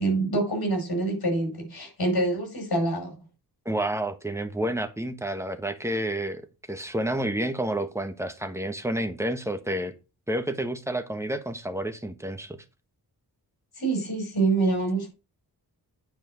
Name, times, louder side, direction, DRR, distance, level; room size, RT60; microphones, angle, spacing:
voice 1, 0.0-3.2 13.8-15.1, right 2 dB, 65° left, 5.4 m, -26 dB
voice 2, 3.6-6.4 6.7-9.9 10.3-12.6, right 1 dB, 5° right, 1.3 m, -30 dB
9.2 x 5.1 x 6.2 m
wide cardioid pair, 110°, 40 cm